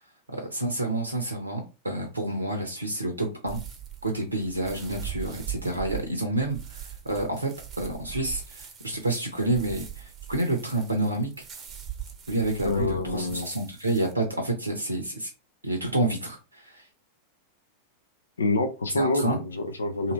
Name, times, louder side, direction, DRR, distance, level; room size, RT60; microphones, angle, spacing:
voice 1, 0.3-3.6 4.0-7.5 7.8-11.3 12.3-15.3 15.6-16.8 18.9-19.4 20.0-20.1, right 1 dB, 80° right, 0.7 m, -29 dB
sound 1, 3.5-14.1, right 10 dB, 25° right, 0.7 m, -40 dB
voice 2, 12.6-13.5 18.4-20.1, left 2 dB, 75° left, 0.6 m, -27 dB
2.9 x 2.7 x 2.9 m
figure-of-eight pair, 90°, 0 cm